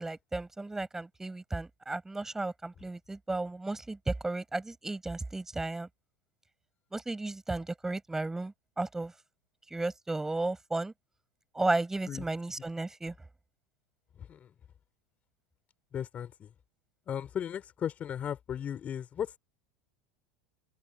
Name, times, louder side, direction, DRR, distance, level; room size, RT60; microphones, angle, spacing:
voice 1, 0.0-5.9 6.9-9.1 9.7-10.9 11.5-13.1, right 2 dB, 10° right, 5.6 m, -34 dB
voice 2, 14.2-14.5 15.9-16.5 17.1-19.4, left 9 dB, 35° left, 3.9 m, -36 dB
hypercardioid pair, 105°, 4 cm